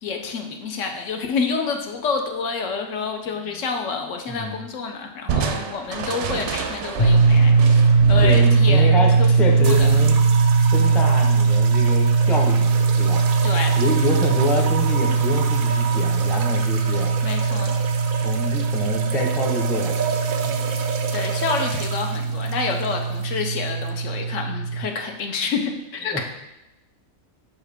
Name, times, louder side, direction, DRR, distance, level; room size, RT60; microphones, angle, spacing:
voice 1, 0.0-8.9 9.2-10.0 13.4-13.7 17.2-17.7 21.1-26.2, left 5 dB, 70° left, 4 dB, 1.0 m, -28 dB
voice 2, 4.3-4.6 8.2-10.2 10.7-13.2 13.8-17.1 18.2-20.0 20.4-20.6 26.1-26.2, left 1 dB, ahead, 0 dB, 0.5 m, -27 dB
Crushing, 5.3-10.7, right 7 dB, 65° right, 0.8 m, -30 dB
sound 1, 7.0-24.8, right 4 dB, 45° left, 0.8 m, -19 dB
sound 2, 9.6-23.9, right 7 dB, 90° right, 1.1 m, -31 dB
7.2 x 4.5 x 3.5 m, 0.94 s
omnidirectional pair, 1.4 m